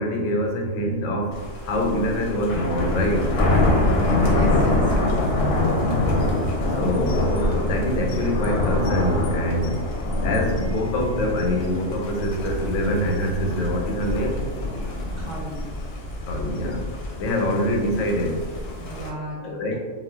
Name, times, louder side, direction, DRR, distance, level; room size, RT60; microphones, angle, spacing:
voice 1, 0.0-3.3 6.7-9.8 10.2-14.4 16.3-16.8 17.2-18.4 19.4-19.8, equal, 85° left, 1 dB, 0.9 m, -25 dB
Thunder, 1.3-19.1, left 1 dB, 65° left, 0.7 m, -25 dB
voice 2, 3.8-5.2 15.0-15.6 17.1-17.2 18.8-19.7, right 1 dB, 40° right, -9 dB, 0.6 m, -34 dB
2.2 x 2.1 x 3.4 m, 1.4 s
omnidirectional pair, 1.3 m